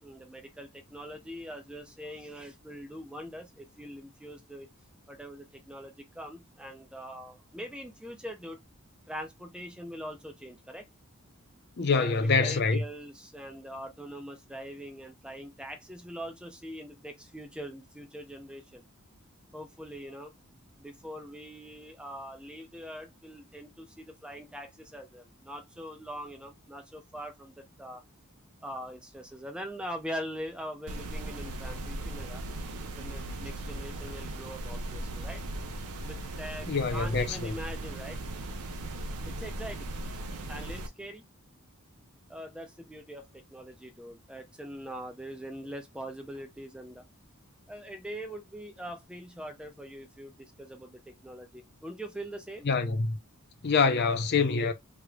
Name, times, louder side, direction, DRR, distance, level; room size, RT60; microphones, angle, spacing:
voice 1, 0.0-4.7 5.1-8.6 9.1-10.9 11.9-18.8 19.5-20.3 20.8-28.0 28.6-32.4 33.0-35.4 36.0-38.2 39.3-39.9 40.5-41.2 42.3-47.1 47.7-52.7 54.6-54.7, equal, 5° right, 0.5 m, -42 dB
voice 2, 11.8-12.8 36.7-37.5 52.7-53.1 53.6-54.7, left 4 dB, 50° left, 0.6 m, -25 dB
sound 1, 30.9-40.9, right 2 dB, 85° right, 0.7 m, -38 dB
3.3 x 3.0 x 2.2 m
head